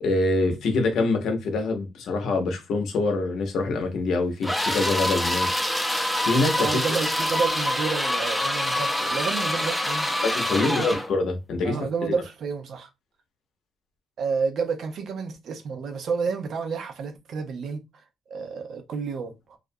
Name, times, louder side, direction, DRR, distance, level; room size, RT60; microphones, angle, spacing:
voice 1, 0.0-5.5 6.2-6.8 10.2-11.8 12.0-12.1, left 3 dB, 75° left, 0.7 m, -25 dB
sound 1, 4.4-11.1, left 1 dB, 5° left, 0.5 m, -26 dB
voice 2, 6.6-10.2 10.7-10.9 11.6-12.9 14.2-17.8 18.3-19.6, right 5 dB, 65° right, 0.5 m, -30 dB
2.4 x 2.1 x 2.6 m
cardioid pair, 90°, 0 cm